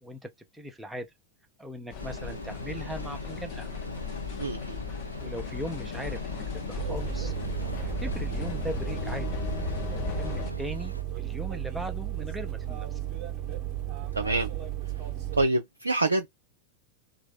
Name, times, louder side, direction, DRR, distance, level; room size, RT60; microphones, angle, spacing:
voice 1, 0.0-1.1 1.6-3.7 5.2-7.3 7.8-9.3 10.0-13.0, equal, 5° right, 0.8 m, -39 dB
sound 1, 1.9-10.5, left 7 dB, 45° left, 1.0 m, -36 dB
sound 2, 2.0-11.0, left 1 dB, 90° left, 0.4 m, -40 dB
voice 2, 4.4-4.8 14.1-14.5 15.4-16.3, right 2 dB, 80° right, 0.4 m, -26 dB
sound 3, 6.8-15.5, right 12 dB, 35° right, 1.0 m, -34 dB
3.0 x 2.3 x 3.4 m
figure-of-eight pair, 90°, 0 cm